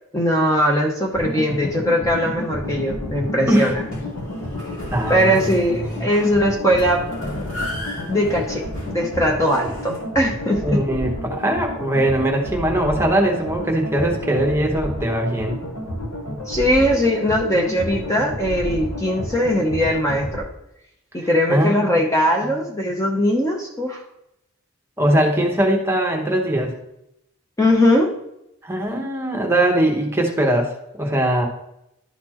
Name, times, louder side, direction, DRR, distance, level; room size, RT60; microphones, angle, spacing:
voice 1, 0.1-3.8 5.1-7.0 8.1-10.8 16.5-20.5 21.1-24.0 27.6-28.1, equal, 15° left, 0 dB, 0.7 m, -20 dB
sound 1, 1.1-20.4, equal, 90° left, 1.2 m, -31 dB
Old Metal Door, 3.8-10.0, left 1 dB, 65° left, 2.4 m, -35 dB
voice 2, 4.9-5.5 5.9-6.0 10.6-15.6 21.5-21.9 22.4-22.5 25.0-26.7 28.6-31.5, right 1 dB, 10° right, 2 dB, 0.9 m, -21 dB
11.0 x 4.2 x 2.9 m, 0.82 s
head